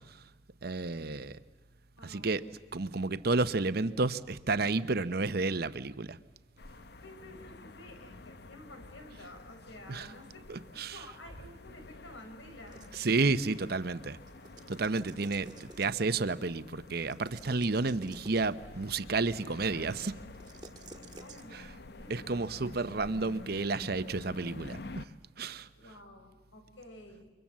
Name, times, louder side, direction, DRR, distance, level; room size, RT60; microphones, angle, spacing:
voice 1, 0.6-1.4 2.0-2.4 2.7-6.2 9.9-10.1 10.5-11.0 12.9-14.2 14.7-20.2 21.5-21.6 22.1-25.1 25.4-25.7, right 3 dB, 55° right, 13 dB, 0.8 m, -31 dB
voice 2, 2.0-2.4 7.0-10.5 10.7-12.9 20.9-22.3 25.7-27.3, left 1 dB, 85° left, 6 dB, 4.6 m, -51 dB
sound 1, 6.6-25.1, left 2 dB, 55° left, 0.8 m, -49 dB
sound 2, 12.7-13.3 14.3-16.2 17.1-18.6 20.3-21.4, right 2 dB, 20° right, 1.6 m, -52 dB
29.0 x 24.5 x 7.5 m, 1.1 s
head